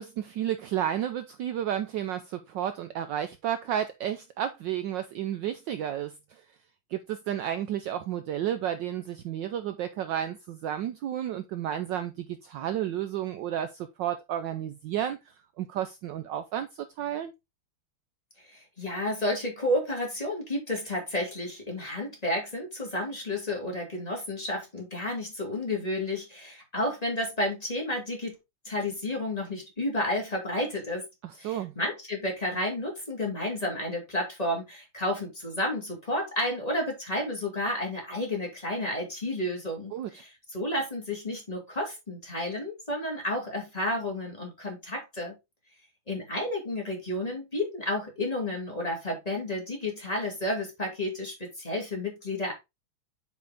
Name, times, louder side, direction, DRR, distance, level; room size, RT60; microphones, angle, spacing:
voice 1, 0.0-6.4 6.9-15.2 15.6-17.3 31.2-31.7 39.9-40.1, right 10 dB, 70° right, 1.1 m, -32 dB
voice 2, 18.5-28.4 28.6-31.0 31.4-45.3 46.1-52.5, left 1 dB, 15° left, 2.9 m, -31 dB
7.8 x 5.0 x 3.7 m
omnidirectional pair, 2.4 m